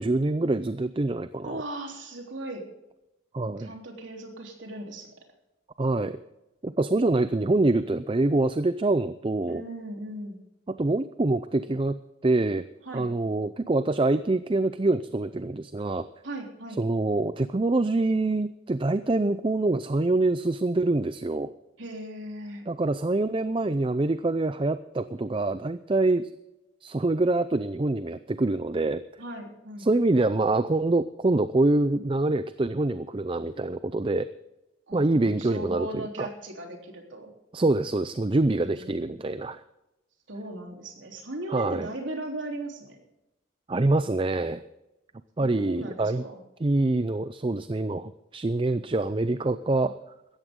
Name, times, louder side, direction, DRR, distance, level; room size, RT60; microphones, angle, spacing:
voice 1, 0.0-1.6 3.3-3.7 5.8-6.2 6.6-9.6 10.8-12.7 12.9-16.1 16.8-21.5 22.7-26.3 26.8-29.0 29.8-34.3 34.9-36.3 37.5-39.6 41.5-41.9 43.7-44.6 45.4-46.2 46.6-49.9, right 2 dB, 25° right, 13 dB, 0.5 m, -25 dB
voice 2, 1.4-2.7 3.6-5.1 9.5-10.4 12.9-13.1 16.2-16.8 21.8-22.7 29.2-29.9 34.9-37.3 38.6-39.1 40.3-43.0 45.4-46.4, right 1 dB, 75° right, 2 dB, 3.5 m, -38 dB
17.0 x 13.5 x 3.7 m, 0.92 s
head